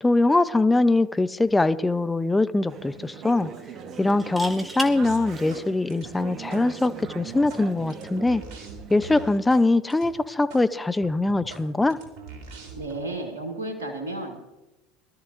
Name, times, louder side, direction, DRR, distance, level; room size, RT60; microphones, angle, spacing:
voice 1, 0.0-3.5 4.0-8.4 8.9-12.0, left 2 dB, 10° left, 13 dB, 0.7 m, -22 dB
sound 1, 1.3-1.5 1.8-1.9 4.1-4.9 6.7-7.0, right 1 dB, 10° right, 2.0 m, -34 dB
Conversation / Chatter, 2.7-9.4, right 7 dB, 45° right, 1.3 m, -40 dB
sound 2, 5.0-5.6 5.9-6.6 7.0-9.6 9.9-10.1 10.5-10.6 11.0-13.0, right 2 dB, 60° right, 3.5 m, -42 dB
voice 2, 12.8-14.5, right 2 dB, 85° right, 2 dB, 1.8 m, -33 dB
22.0 x 13.0 x 2.6 m, 0.99 s
hypercardioid pair, 80°, 0 cm